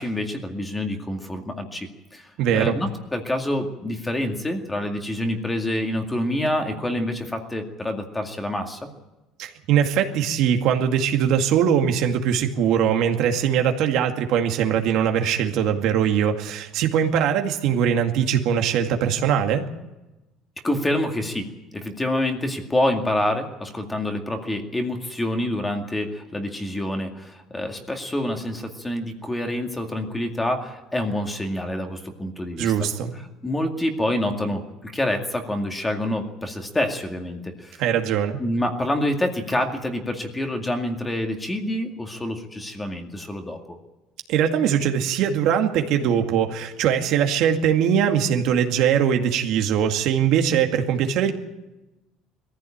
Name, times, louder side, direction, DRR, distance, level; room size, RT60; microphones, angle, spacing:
voice 1, 0.0-8.9 20.6-32.7 33.4-37.8 38.4-43.8, left 1 dB, 10° left, 4 dB, 2.2 m, -27 dB
voice 2, 2.4-2.8 9.4-19.7 32.6-33.1 37.8-38.4 44.3-51.3, right 8 dB, 60° right, 4 dB, 2.2 m, -21 dB
21.0 x 15.0 x 8.8 m, 1.0 s
cardioid pair, 145°, 0 cm